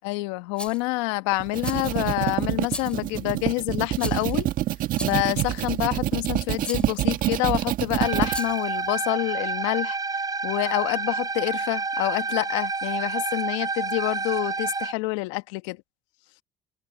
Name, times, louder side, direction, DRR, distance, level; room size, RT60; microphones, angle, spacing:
voice 1, 0.0-4.5 5.0-10.0 10.4-15.8, left 23 dB, 80° left, 1.4 m, -27 dB
Rattle, 0.6-0.9 1.6-2.1 2.7-3.1 4.0-4.4 4.9-5.4 6.6-7.0 8.2-8.7, left 1 dB, 5° left, 4.2 m, -38 dB
sound 1, 1.3-8.4, right 14 dB, 65° right, 1.7 m, -26 dB
sound 2, 8.0-14.9, right 4 dB, 25° right, 4.4 m, -29 dB
hypercardioid pair, 60°, 15 cm